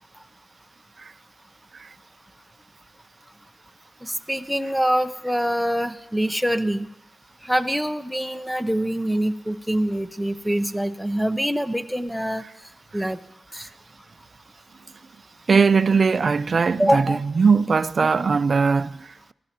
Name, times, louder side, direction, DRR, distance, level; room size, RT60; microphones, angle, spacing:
voice 1, 4.0-6.9 7.4-12.4 12.9-13.2 13.5-13.7 16.8-17.2, equal, ahead, 0.7 m, -24 dB
voice 2, 15.5-19.3, right 5 dB, 50° right, 0.4 m, -20 dB
23.0 x 14.0 x 2.9 m
cardioid pair, 85°, 0 cm